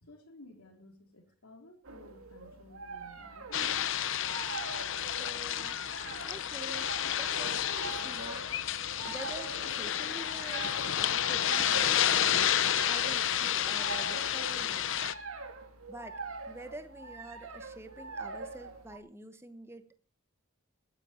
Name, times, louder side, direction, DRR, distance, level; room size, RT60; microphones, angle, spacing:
voice 1, 0.0-4.0, left 1 dB, 80° left, 3 dB, 3.8 m, -55 dB
sound 1, 1.8-19.0, right 3 dB, 70° right, 2.2 m, -44 dB
sound 2, 3.5-15.1, left 10 dB, 60° left, 0.8 m, -30 dB
voice 2, 5.1-5.8 6.2-8.5 9.1-15.3 15.9-16.2 16.5-20.0, right 1 dB, 10° right, 9 dB, 1.1 m, -48 dB
20.0 x 10.5 x 4.4 m, 0.38 s
head